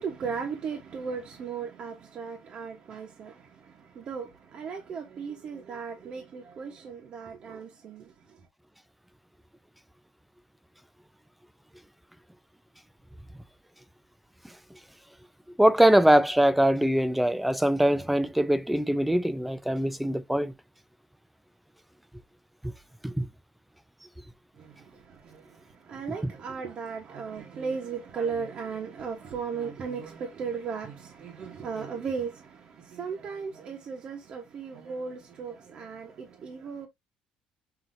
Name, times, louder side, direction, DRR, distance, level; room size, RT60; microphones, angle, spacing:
voice 1, 0.0-8.4 24.6-36.9, right 5 dB, 40° right, 1.0 m, -36 dB
voice 2, 15.6-20.5 22.6-22.7 23.0-23.3 26.2-26.3, right 1 dB, 5° right, 0.3 m, -22 dB
5.8 x 2.7 x 2.6 m
cardioid pair, 140°, 3 cm